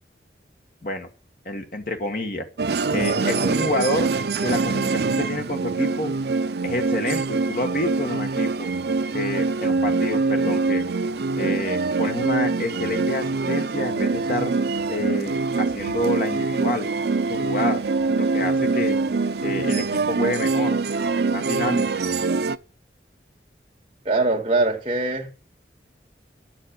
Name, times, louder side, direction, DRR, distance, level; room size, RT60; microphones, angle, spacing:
voice 1, 1.5-2.5 2.9-4.1 4.4-6.2 6.6-8.7 9.1-10.8 11.4-14.5 14.9-16.9 17.3-17.8 18.2-19.0 19.4-20.8 21.3-21.8, left 1 dB, 50° left, 1.8 m, -28 dB
sound 1, 2.6-22.6, right 4 dB, 65° right, 0.5 m, -24 dB
voice 2, 2.9-3.6 24.0-25.3, right 2 dB, 30° right, 2.4 m, -23 dB
9.8 x 7.7 x 8.9 m
head